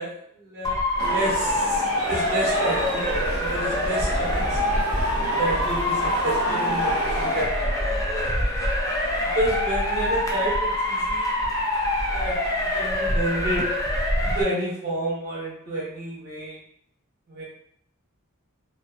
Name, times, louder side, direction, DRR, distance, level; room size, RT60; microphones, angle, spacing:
voice 1, 0.0-4.6 5.4-8.6 9.3-11.5 12.1-13.7 14.2-16.6 17.3-17.4, right 1 dB, 45° right, -6 dB, 0.9 m, -30 dB
Motor vehicle (road) / Siren, 0.6-14.4, left 1 dB, 15° left, 0.3 m, -25 dB
sound 1, 1.0-7.5, right 1 dB, 85° right, 0.7 m, -30 dB
2.4 x 2.2 x 2.4 m, 0.70 s
head